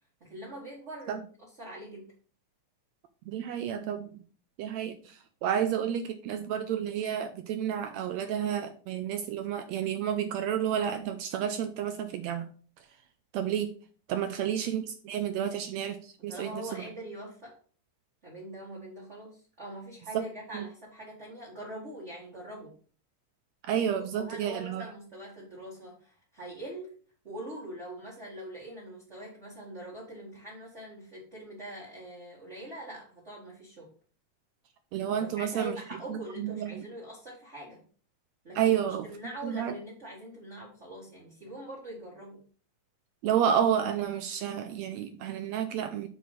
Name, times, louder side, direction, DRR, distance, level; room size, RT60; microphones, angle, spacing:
voice 1, 0.2-1.2 1.6-2.1 15.3-15.5 16.2-17.6 18.2-22.8 24.0-26.9 27.2-33.9 35.1-37.8 38.4-42.4, right 1 dB, 30° right, -4 dB, 1.5 m, -43 dB
voice 2, 3.3-4.2 4.6-12.5 13.3-13.7 14.1-16.8 20.5-20.6 23.6-24.8 34.9-35.8 36.1-36.8 38.6-39.1 39.4-39.8 43.2-46.1, right 9 dB, 80° right, 8 dB, 1.7 m, -30 dB
6.1 x 4.7 x 5.3 m, 0.43 s
omnidirectional pair, 3.5 m